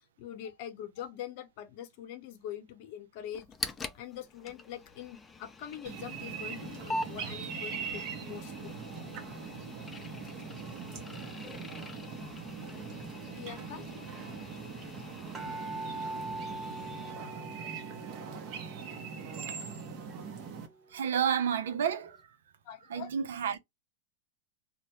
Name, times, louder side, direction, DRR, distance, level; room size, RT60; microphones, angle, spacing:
voice 1, 0.0-3.5 3.9-8.8 13.3-13.8 22.6-23.1, left 10 dB, 60° left, 0.7 m, -43 dB
sound 1, 3.3-17.1, left 2 dB, 15° left, 0.4 m, -44 dB
sound 2, 5.8-20.7, right 6 dB, 45° right, 0.8 m, -42 dB
sound 3, 12.2-12.5 13.4-13.5 13.7-13.8 14.0-21.6 22.0-22.1, right 2 dB, 20° right, 0.9 m, -44 dB
voice 2, 20.9-22.4 22.9-23.6, right 8 dB, 85° right, 0.5 m, -30 dB
2.2 x 2.1 x 2.8 m
hypercardioid pair, 120°, 0 cm